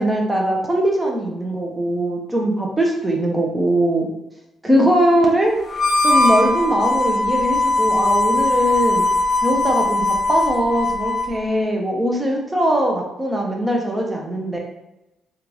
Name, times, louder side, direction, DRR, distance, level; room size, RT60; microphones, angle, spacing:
voice 1, 0.0-4.1 4.6-5.5 6.0-9.1 9.4-14.6, right 1 dB, 15° right, -1 dB, 0.8 m, -20 dB
Harmonica, 5.7-11.4, left 2 dB, 45° left, 0.7 m, -19 dB
3.4 x 2.5 x 3.0 m, 0.93 s
cardioid pair, 90°, 0 cm